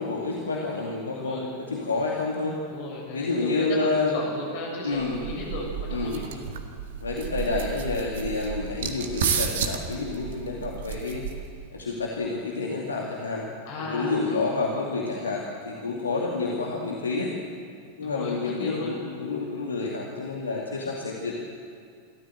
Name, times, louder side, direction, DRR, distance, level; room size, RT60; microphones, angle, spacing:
voice 1, 0.0-2.6 3.1-4.1 4.8-5.2 5.9-6.2 7.0-11.2 11.7-13.5 13.8-17.3 18.0-21.3, left 3 dB, 75° left, -1 dB, 2.4 m, -29 dB
voice 2, 1.1-1.5 2.7-6.5 13.7-14.2 14.5-14.6 18.0-19.0, left 2 dB, 50° left, 1 dB, 6.6 m, -35 dB
sound 1, 5.0-11.7, right 7 dB, 60° right, 1.8 m, -32 dB
27.0 x 14.0 x 8.0 m, 2.2 s
figure-of-eight pair, 90°, 0 cm